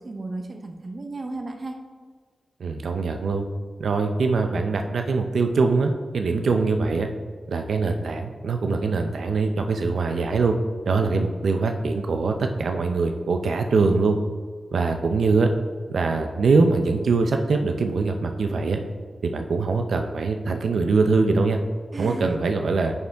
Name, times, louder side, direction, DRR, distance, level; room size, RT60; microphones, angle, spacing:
voice 1, 0.0-1.8 21.9-22.3, right 2 dB, 35° right, 4 dB, 0.7 m, -34 dB
voice 2, 2.6-3.5 3.8-7.1 7.5-10.6 10.9-14.2 14.7-15.5 15.9-18.8 19.2-21.6 22.0-22.9, right 4 dB, 80° right, 5 dB, 0.6 m, -23 dB
9.5 x 5.4 x 3.5 m, 1.5 s
wide cardioid pair, 180°, 0 cm